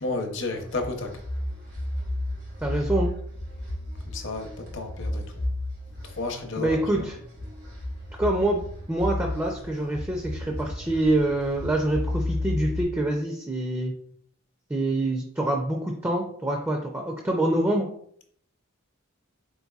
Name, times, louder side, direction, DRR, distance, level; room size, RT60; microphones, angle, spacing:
voice 1, 0.0-1.2 4.1-5.2 6.0-7.1, left 3 dB, 55° left, 4 dB, 0.7 m, -32 dB
sound 1, 0.6-12.8, left 1 dB, 85° right, 1.7 m, -33 dB
voice 2, 2.6-3.1 6.6-7.2 8.2-8.6 8.9-13.9 14.7-17.9, right 1 dB, 10° right, 1 dB, 0.4 m, -26 dB
4.2 x 3.9 x 2.3 m, 0.63 s
head